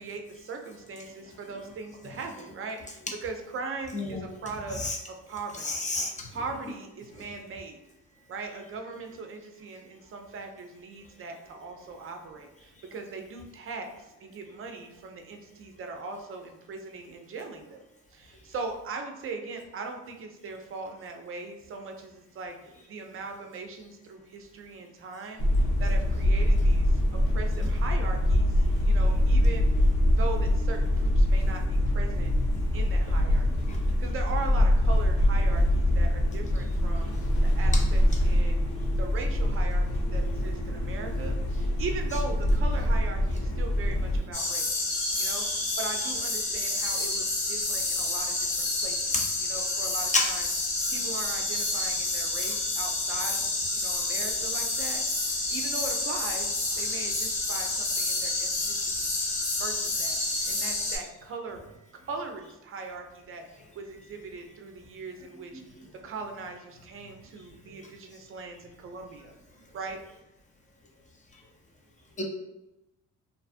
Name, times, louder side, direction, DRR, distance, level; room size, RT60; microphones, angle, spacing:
voice 1, 0.0-4.8 5.1-5.7 6.3-7.8 8.3-17.8 18.1-25.5 25.8-29.7 30.1-32.3 32.7-37.1 37.6-38.6 39.0-44.8 45.1-50.5 50.9-55.2 55.5-56.5 56.8-59.1 59.6-61.6 62.0-63.4 63.7-65.6 66.0-69.3 69.7-70.0, right 4 dB, 45° right, 4 dB, 0.5 m, -40 dB
voice 2, 3.9-4.3 4.7-5.0 5.6-6.3 33.7-33.8 49.1-49.3 50.1-50.3 72.2-72.3, left 3 dB, 25° left, 1 dB, 0.6 m, -28 dB
sound 1, 25.4-44.2, left 1 dB, 70° left, 0.6 m, -24 dB
sound 2, 44.3-61.0, left 2 dB, 85° left, 1.2 m, -29 dB
2.5 x 2.3 x 2.5 m, 0.97 s
cardioid pair, 90°, 30 cm